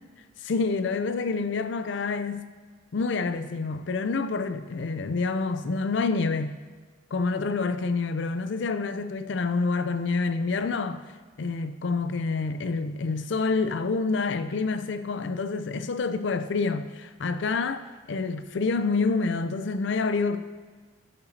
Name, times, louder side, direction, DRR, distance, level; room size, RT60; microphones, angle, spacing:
voice 1, 0.4-2.5 2.9-6.6 7.1-11.0 11.4-17.8 18.1-20.4, left 4 dB, 65° left, 0.5 m, -27 dB
12.0 x 6.8 x 2.8 m
head